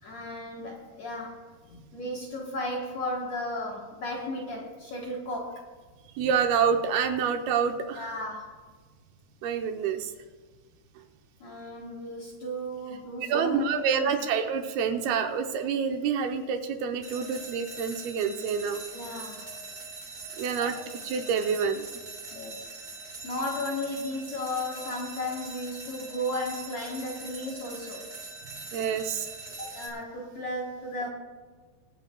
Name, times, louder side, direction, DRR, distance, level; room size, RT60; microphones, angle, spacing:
voice 1, 0.0-5.7 7.9-8.6 11.4-14.1 18.9-19.4 20.6-20.8 22.3-22.7 23.2-28.1 29.6-31.1, left 1 dB, 65° left, -2 dB, 1.8 m, -35 dB
voice 2, 6.2-8.1 9.4-10.1 13.3-18.8 20.4-20.7 21.1-21.8 28.7-29.3, right 6 dB, 80° right, 5 dB, 2.5 m, -27 dB
sound 1, 17.0-29.9, right 3 dB, 35° right, 1.3 m, -42 dB
24.5 x 10.0 x 2.3 m, 1.4 s
omnidirectional pair, 4.7 m